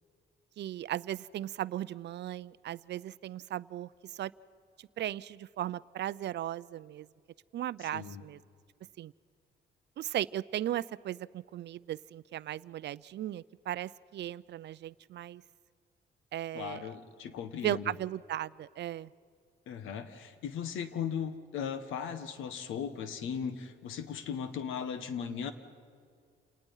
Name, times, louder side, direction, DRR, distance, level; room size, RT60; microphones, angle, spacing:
voice 1, 0.6-3.9 4.2-4.3 5.0-7.1 7.5-8.4 9.0-9.1 10.0-15.4 16.3-16.9 17.6-19.1, right 12 dB, 60° right, 19 dB, 0.5 m, -36 dB
voice 2, 7.8-8.2 16.5-17.9 19.7-25.5, left 7 dB, 85° left, 11 dB, 1.4 m, -37 dB
28.5 x 19.0 x 5.6 m, 2.1 s
cardioid pair, 90°, 20 cm